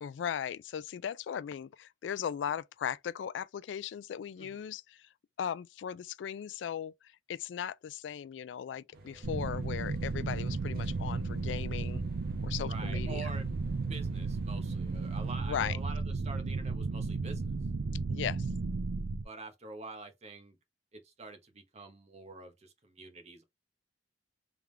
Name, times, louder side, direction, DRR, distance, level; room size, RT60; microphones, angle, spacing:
voice 1, 0.0-5.1 5.4-6.9 7.3-12.0 12.4-13.3 15.4-15.8 18.1-18.5, left 8 dB, 70° left, 0.3 m, -37 dB
sound 1, 8.9-15.3, right 1 dB, 55° right, 1.2 m, -53 dB
sound 2, 9.2-19.2, right 3 dB, 80° right, 0.5 m, -34 dB
voice 2, 12.7-13.5 13.9-17.5 19.2-20.6 20.9-23.4, right 3 dB, 35° right, 0.9 m, -46 dB
3.5 x 3.5 x 3.2 m
head